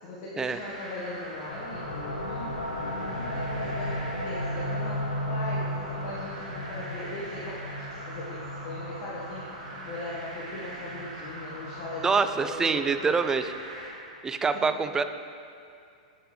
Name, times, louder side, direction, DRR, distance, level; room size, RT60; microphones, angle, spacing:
voice 1, 0.0-5.0 5.3-7.6 7.9-13.4 14.5-14.8, left 1 dB, 50° left, -7 dB, 1.4 m, -39 dB
sound 1, 0.5-13.9, right 1 dB, 80° right, 2.0 m, -42 dB
sound 2, 1.5-12.9, left 1 dB, 90° left, 0.9 m, -35 dB
voice 2, 12.0-13.4 14.2-15.0, right 5 dB, 15° right, 10 dB, 0.3 m, -25 dB
8.0 x 7.7 x 3.2 m, 2.5 s
hypercardioid pair, 120°, 4 cm